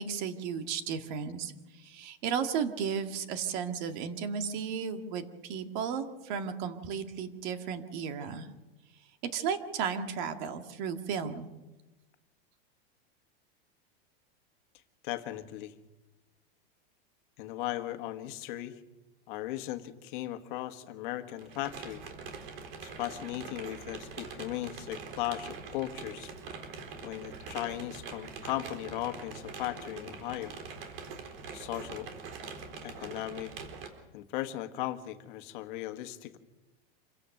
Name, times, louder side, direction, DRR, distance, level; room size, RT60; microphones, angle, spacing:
voice 1, 0.0-1.5 1.8-8.5 9.2-11.5, right 7 dB, 50° right, 7 dB, 2.0 m, -34 dB
voice 2, 15.0-15.7 17.4-18.7 19.3-22.0 22.8-26.3 27.0-30.5 31.5-32.1 32.8-33.5 34.1-36.4, left 14 dB, 55° left, 8 dB, 1.6 m, -37 dB
sound 1, 21.4-33.9, right 5 dB, 75° right, 4.2 m, -44 dB
27.0 x 16.5 x 6.7 m, 1.1 s
supercardioid pair, 155°, 29 cm